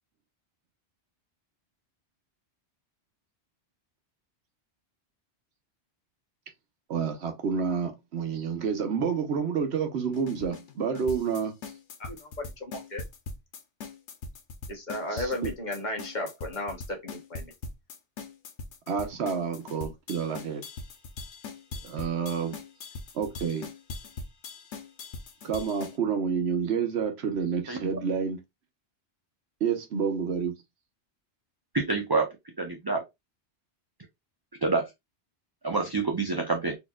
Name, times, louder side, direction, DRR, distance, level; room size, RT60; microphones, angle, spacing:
voice 1, 6.9-11.5 15.1-15.5 18.9-20.6 21.8-22.6 23.1-23.7 25.4-28.4 29.6-30.5, right 6 dB, 70° right, 1.1 m, -29 dB
sound 1, 10.1-26.0, left 3 dB, 90° left, 1.1 m, -41 dB
voice 2, 12.0-13.0 14.7-17.5, left 1 dB, 45° left, 1.1 m, -35 dB
voice 3, 31.7-32.3 32.6-33.0 34.6-34.9 35.6-36.8, right 3 dB, 30° right, 0.5 m, -27 dB
4.2 x 3.0 x 2.3 m
omnidirectional pair, 1.2 m